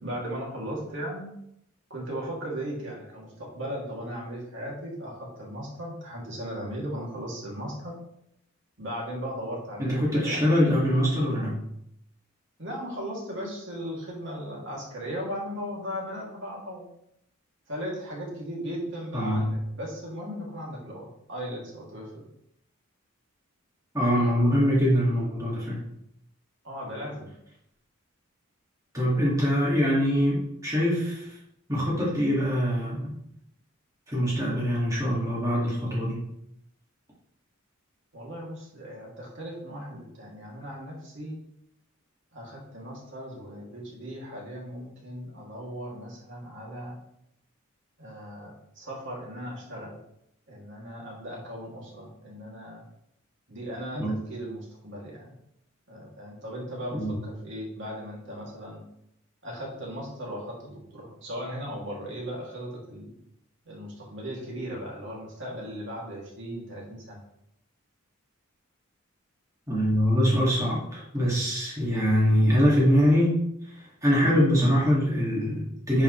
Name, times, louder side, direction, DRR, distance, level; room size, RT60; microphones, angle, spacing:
voice 1, 0.0-1.3 1.9-8.0 8.8-10.6 12.6-16.9 17.7-22.3 26.6-27.3 38.1-41.4 42.3-47.0 48.0-50.0 50.5-52.8 53.5-55.3 55.9-58.8 59.4-63.1 63.7-67.2, equal, 60° right, -3 dB, 2.7 m, -37 dB
voice 2, 9.8-11.6 19.1-19.5 23.9-25.8 28.9-31.4 31.7-33.2 34.1-36.2 53.9-54.1 56.9-57.2 69.7-76.0, equal, 15° right, -6 dB, 2.2 m, -24 dB
10.5 x 5.6 x 3.2 m, 0.75 s
head